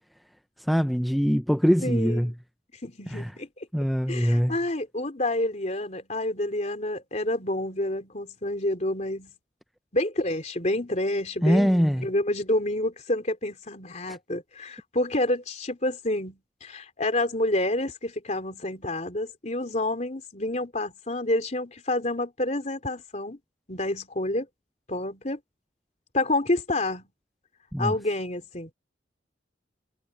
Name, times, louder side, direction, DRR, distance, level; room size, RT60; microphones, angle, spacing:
voice 1, 0.7-2.3 3.1-3.3 3.7-4.5 11.4-12.1 14.1-14.2 27.7-27.9, equal, ahead, 0.4 m, -23 dB
voice 2, 1.8-2.3 2.8-3.7 4.1-9.3 9.9-23.4 23.7-24.5 24.9-25.4 26.1-27.1 27.8-28.7, left 1 dB, 40° left, 3.6 m, -28 dB
head